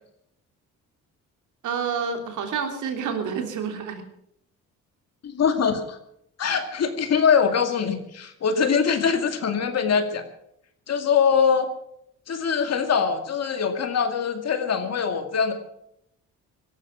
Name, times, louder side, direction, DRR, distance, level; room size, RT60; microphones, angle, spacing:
voice 1, 1.6-4.0, right 6 dB, 75° right, 5 dB, 3.2 m, -28 dB
voice 2, 5.2-6.0 6.4-10.2 10.9-11.7 12.3-15.5, left 6 dB, 55° left, 7 dB, 2.2 m, -23 dB
17.5 x 13.0 x 5.8 m, 0.74 s
cardioid pair, 90°, 30 cm